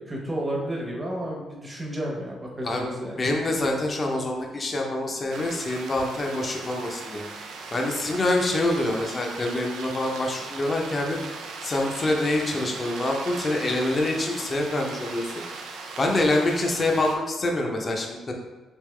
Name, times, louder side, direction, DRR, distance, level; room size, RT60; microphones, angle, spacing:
voice 1, 0.0-3.3, right 1 dB, 20° right, -2 dB, 1.0 m, -32 dB
voice 2, 3.2-7.2 7.7-11.2 11.6-15.3 16.0-18.3, left 2 dB, 30° left, 1 dB, 0.6 m, -26 dB
sound 1, 5.3-17.2, right 4 dB, 80° right, 0.4 m, -38 dB
3.6 x 2.8 x 3.2 m, 1.2 s
cardioid pair, 90°, 0 cm